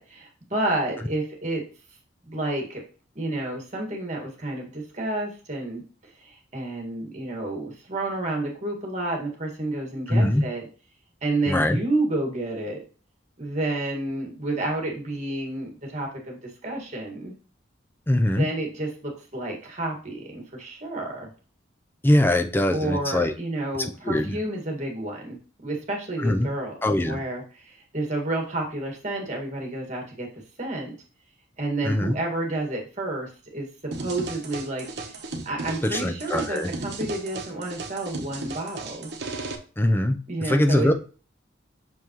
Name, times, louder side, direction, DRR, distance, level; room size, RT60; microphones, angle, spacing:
voice 1, 0.0-1.6 2.2-2.8 3.2-10.6 11.2-12.8 13.4-17.3 18.4-21.3 22.7-30.3 30.6-31.0 31.6-33.7 34.0-35.2 35.5-39.1 40.3-40.9, right 2 dB, 35° right, 1 dB, 1.8 m, -30 dB
voice 2, 10.1-10.4 11.5-11.8 18.1-18.5 22.0-23.3 23.8-24.4 26.2-26.5 26.8-27.2 31.8-32.2 35.8-36.7 39.8-40.9, left 1 dB, 10° left, 6 dB, 0.5 m, -22 dB
sound 1, 33.9-39.5, right 3 dB, 60° right, 1.0 m, -35 dB
6.1 x 5.5 x 3.0 m, 0.37 s
head